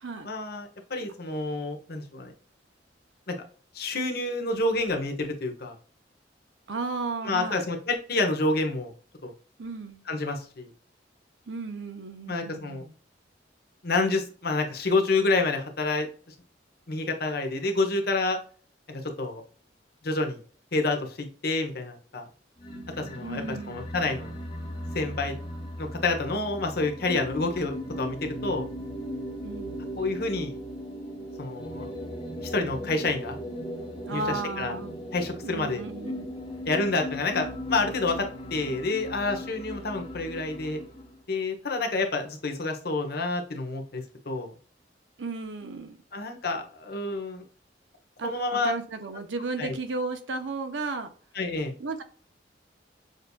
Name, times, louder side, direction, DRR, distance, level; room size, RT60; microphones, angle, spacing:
voice 1, 0.2-2.3 3.3-3.4 3.7-5.7 7.2-8.9 9.2-9.3 10.1-10.7 12.3-12.8 13.8-16.1 16.9-18.4 18.9-19.4 20.0-20.4 20.7-22.3 23.0-24.3 24.9-25.3 25.8-28.7 30.0-30.6 31.4-31.9 32.4-33.4 34.1-34.7 35.1-35.8 36.7-40.8 41.3-44.5 46.1-47.4 48.2-48.7 49.6-49.7 51.3-51.7, left 3 dB, 60° left, 0.9 m, -28 dB
voice 2, 6.7-7.7 9.6-10.0 11.5-12.9 23.2-23.9 29.4-29.9 34.0-34.9 35.4-36.3 45.2-46.0 48.2-51.1 51.8-52.0, right 3 dB, 90° right, 0.7 m, -34 dB
sound 1, 22.6-41.2, equal, 30° left, 0.9 m, -38 dB
6.4 x 2.7 x 2.2 m
head